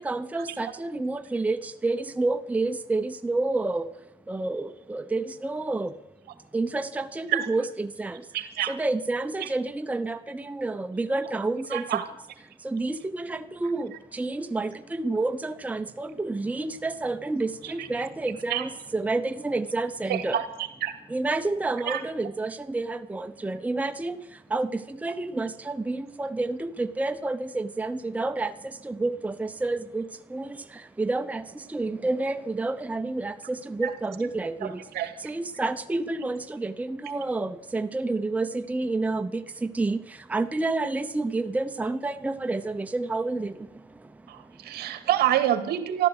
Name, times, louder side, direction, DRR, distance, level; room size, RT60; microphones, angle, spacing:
voice 1, 0.0-6.0 6.5-8.3 8.6-12.0 12.6-20.4 21.1-45.0, right 2 dB, 10° right, 9 dB, 0.8 m, -29 dB
voice 2, 8.3-8.7 9.4-9.5 11.7-12.1 17.8-17.9 18.5-18.6 20.1-20.4 20.8-20.9 21.9-22.0 33.8-33.9 34.9-35.1 44.3-46.1, right 12 dB, 70° right, 9 dB, 2.1 m, -26 dB
14.0 x 12.0 x 8.1 m, 0.96 s
cardioid pair, 110°, 17 cm